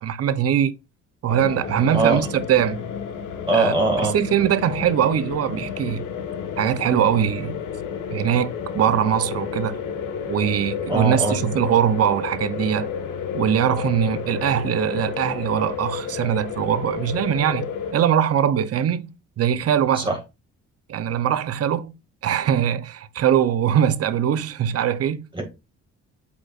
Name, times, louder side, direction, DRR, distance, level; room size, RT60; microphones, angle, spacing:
voice 1, 0.0-0.7 1.2-2.8 3.5-3.7 4.1-6.0 6.6-7.6 8.1-9.8 10.3-12.9 13.3-17.7 17.9-19.1 19.4-20.1 20.9-21.9 22.2-25.3, right 9 dB, 50° right, 0.7 m, -21 dB
sound 1, 1.3-17.9, left 7 dB, 85° left, 1.3 m, -31 dB
voice 2, 3.5-4.1 10.9-11.5 19.9-20.2 25.3-25.4, right 2 dB, 15° right, 2.1 m, -21 dB
8.2 x 5.3 x 2.4 m
cardioid pair, 90°, 30 cm